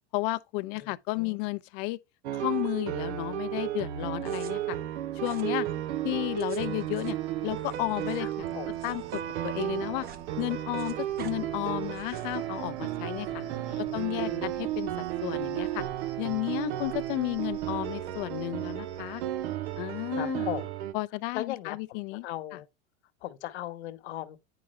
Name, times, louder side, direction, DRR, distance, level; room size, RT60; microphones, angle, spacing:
voice 1, 0.1-2.0 2.3-4.8 5.2-5.7 6.0-7.2 7.4-8.6 8.8-10.1 10.4-13.4 13.9-14.9 15.2-15.8 16.2-19.2 19.8-20.5 20.9-22.3 22.5-22.6, left 21 dB, 50° left, 0.6 m, -33 dB
voice 2, 0.7-1.4 8.2-8.7 13.3-14.5 20.2-20.7 21.3-22.7 23.2-24.4, left 13 dB, 75° left, 1.2 m, -39 dB
sound 1, 2.2-20.9, right 12 dB, 75° right, 0.9 m, -33 dB
sound 2, 4.2-4.5 5.2-5.5 6.2-9.2 9.5-10.2 10.5-11.3 11.9-12.4, right 7 dB, 30° right, 1.0 m, -49 dB
Cricket, 4.8-20.5, right 4 dB, 55° right, 2.3 m, -53 dB
9.2 x 4.9 x 3.1 m
supercardioid pair, 130°, 33 cm